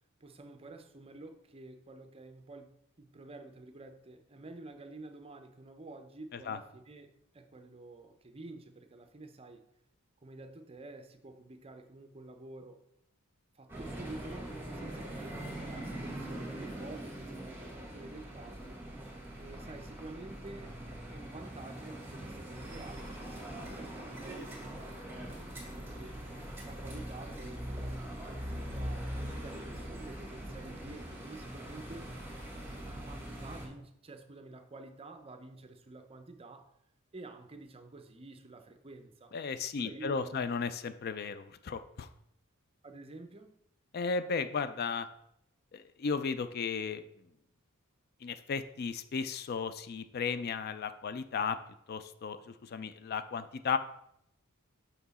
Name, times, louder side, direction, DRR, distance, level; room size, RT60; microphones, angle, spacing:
voice 1, 0.2-9.6 10.2-12.8 13.5-18.8 19.4-20.8 21.1-26.2 26.6-32.1 32.8-36.7 37.1-39.4 39.8-40.5 42.8-43.5, right 2 dB, 25° right, 7 dB, 0.6 m, -50 dB
sound 1, 13.7-33.7, right 1 dB, 10° right, 1.6 m, -42 dB
voice 2, 39.3-42.1 43.9-45.1 45.7-47.0 48.2-51.6 51.9-53.8, left 5 dB, 45° left, 12 dB, 0.4 m, -35 dB
5.9 x 5.7 x 4.1 m, 0.76 s
head